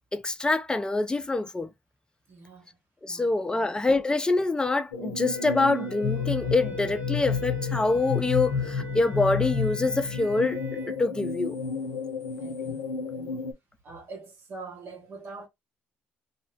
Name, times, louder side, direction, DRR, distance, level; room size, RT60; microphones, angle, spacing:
voice 1, 0.1-1.7 3.0-11.6, left 3 dB, 15° left, 0.5 m, -25 dB
voice 2, 2.3-2.8 3.1-3.4 12.4-12.8 13.1-13.5 13.8-15.5, right 3 dB, 55° right, 1.3 m, -44 dB
sound 1, 4.9-13.5, left 5 dB, 80° left, 0.5 m, -31 dB
Wind instrument woodwind instrument, 5.2-10.9, right 1 dB, 70° right, 1.5 m, -42 dB
2.7 x 2.0 x 2.8 m
hypercardioid pair, 55°, 5 cm